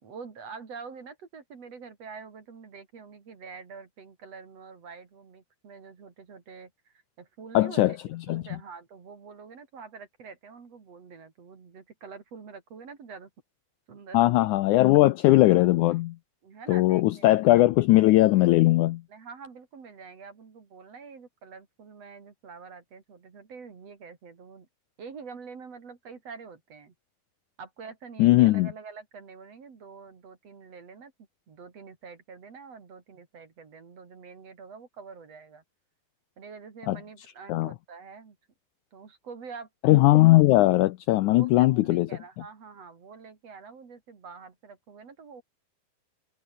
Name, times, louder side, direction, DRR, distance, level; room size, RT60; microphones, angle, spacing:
voice 1, 0.0-13.3 13.9-14.5 16.4-17.3 19.1-24.7 25.0-26.9 27.6-31.1 31.5-35.6 36.4-38.4 38.9-39.7 41.3-45.4, right 5 dB, 45° right, 3.8 m, -46 dB
voice 2, 7.5-7.9 8.3-8.4 14.1-16.2 16.7-19.0 28.2-28.7 36.9-37.0 37.5-37.7 39.8-42.1, left 17 dB, 85° left, 1.7 m, -19 dB
omnidirectional pair, 4.2 m